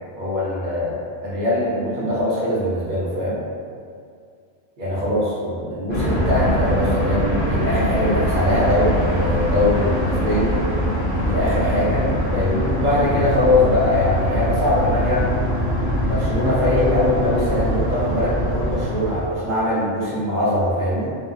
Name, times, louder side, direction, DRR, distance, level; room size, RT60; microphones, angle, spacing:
voice 1, 0.2-3.4 4.8-10.6 11.2-15.4 16.0-21.1, left 1 dB, 50° right, -7 dB, 0.7 m, -22 dB
sound 1, 5.9-19.3, equal, 10° right, 0.8 m, -22 dB
2.7 x 2.1 x 2.4 m, 2.2 s
omnidirectional pair, 1.2 m